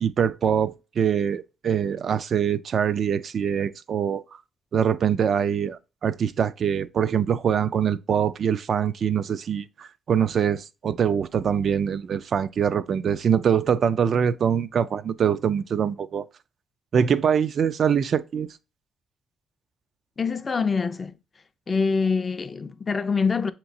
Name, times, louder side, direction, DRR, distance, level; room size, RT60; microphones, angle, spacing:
voice 1, 0.0-4.2 4.7-16.3 16.9-18.6, right 7 dB, 55° right, 0.3 m, -24 dB
voice 2, 20.2-21.2 21.7-23.5, left 5 dB, 35° left, 0.4 m, -25 dB
6.9 x 2.9 x 2.6 m
cardioid pair, 90°, 0 cm